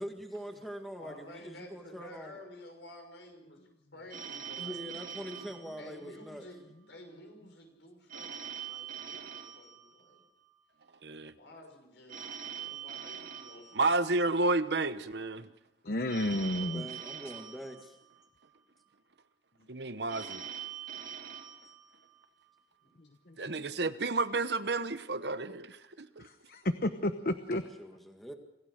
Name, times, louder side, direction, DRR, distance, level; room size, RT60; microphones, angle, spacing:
voice 1, 0.0-2.4 4.6-6.5 12.2-12.3 16.7-18.0 27.8-28.3, equal, ahead, 3 dB, 2.0 m, -43 dB
voice 2, 1.0-3.6 3.9-5.1 5.8-6.6 6.9-10.2 11.4-13.9 22.8-22.9 23.6-23.8, left 1 dB, 75° left, 3 dB, 6.0 m, -51 dB
Telephone, 4.1-6.6 8.1-10.6 12.1-14.6 16.1-18.6 20.1-22.6, right 8 dB, 45° right, 2.3 m, -44 dB
voice 3, 11.0-11.3 13.7-15.5 19.7-20.4 23.4-26.3, right 3 dB, 60° right, 12 dB, 1.0 m, -31 dB
voice 4, 15.8-16.9 23.3-23.4 26.2-27.6, left 1 dB, 55° left, 9 dB, 1.0 m, -31 dB
26.5 x 16.0 x 6.5 m, 0.93 s
head